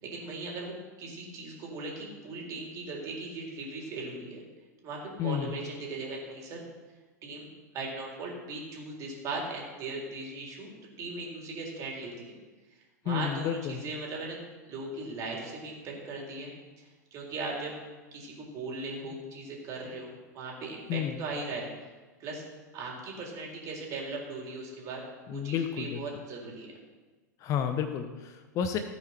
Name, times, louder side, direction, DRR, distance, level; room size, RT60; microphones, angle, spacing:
voice 1, 0.0-4.4 4.8-6.6 7.2-7.5 7.7-10.7 11.0-12.4 12.7-14.4 14.6-16.5 16.8-17.7 18.1-21.7 22.2-22.4 22.7-25.0 25.3-26.8, right 3 dB, 35° right, -1 dB, 4.0 m, -38 dB
voice 2, 5.2-5.6 13.0-13.8 20.9-21.2 25.3-26.0 27.4-28.8, left 8 dB, 35° left, 8 dB, 0.9 m, -31 dB
16.5 x 8.8 x 4.4 m, 1.3 s
figure-of-eight pair, 95°, 10 cm